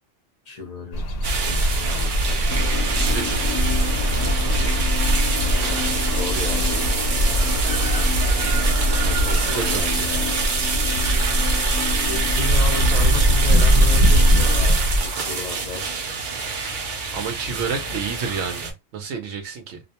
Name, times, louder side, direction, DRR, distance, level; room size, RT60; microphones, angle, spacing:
voice 1, 0.5-1.2 1.5-2.6 5.4-6.9 9.2-10.4 12.0-15.9, left 3 dB, 40° left, 0.8 m, -34 dB
sound 1, 0.9-15.1, equal, 70° left, 0.8 m, -21 dB
sound 2, 1.2-18.7, right 5 dB, 55° right, 0.7 m, -26 dB
sound 3, 2.5-14.7, left 6 dB, 20° left, 0.3 m, -33 dB
voice 2, 2.9-3.7 9.0-10.1 17.1-19.8, right 5 dB, 90° right, 0.9 m, -30 dB
2.4 x 2.0 x 2.8 m
omnidirectional pair, 1.1 m